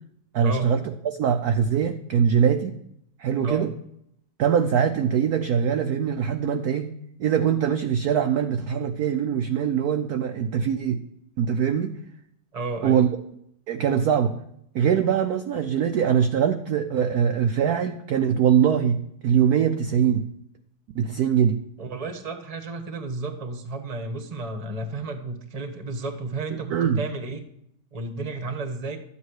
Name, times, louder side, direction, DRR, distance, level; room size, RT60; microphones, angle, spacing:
voice 1, 0.3-0.8 1.2-2.7 3.2-3.7 4.4-6.9 7.2-11.0 11.4-11.9 12.8-13.1 13.7-14.3 14.7-20.3 20.9-21.6 26.5-27.0, right 8 dB, 65° right, 6 dB, 0.9 m, -22 dB
voice 2, 12.5-13.1 21.8-27.4 27.9-29.0, right 3 dB, 25° right, 6 dB, 1.0 m, -32 dB
12.5 x 8.5 x 4.8 m, 0.74 s
omnidirectional pair, 2.3 m